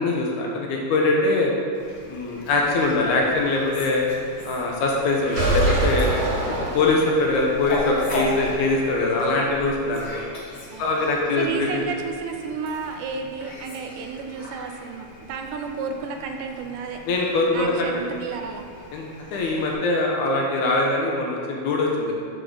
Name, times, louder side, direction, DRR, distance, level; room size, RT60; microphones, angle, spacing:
voice 1, 0.0-1.5 2.1-4.0 4.4-6.1 6.7-10.3 10.8-11.8 17.1-17.9 18.9-19.0 19.3-22.1, left 2 dB, 75° left, -1 dB, 2.1 m, -22 dB
Fowl, 1.7-19.7, left 1 dB, 50° left, 1.3 m, -38 dB
sound 1, 5.3-7.4, right 2 dB, 50° right, 2.6 m, -23 dB
voice 2, 11.4-17.0 17.5-18.6, right 5 dB, 80° right, 4 dB, 2.0 m, -32 dB
6.8 x 3.8 x 6.3 m, 2.3 s
omnidirectional pair, 3.8 m